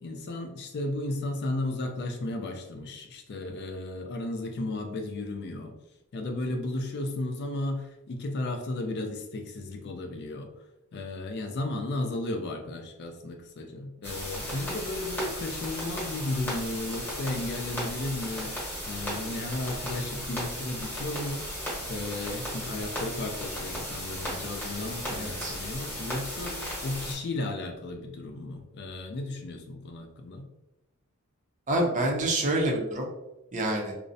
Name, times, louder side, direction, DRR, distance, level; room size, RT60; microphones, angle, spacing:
voice 1, 0.0-5.7 6.1-10.5 10.9-21.5 21.9-26.6 26.8-30.5, left 2 dB, 50° left, 5 dB, 0.4 m, -34 dB
sound 1, 14.0-27.2, equal, 10° left, 0.9 m, -35 dB
voice 2, 25.1-25.6 31.7-33.1 33.5-33.9, right 1 dB, 35° right, 0 dB, 0.5 m, -27 dB
2.4 x 2.0 x 2.5 m, 0.95 s
head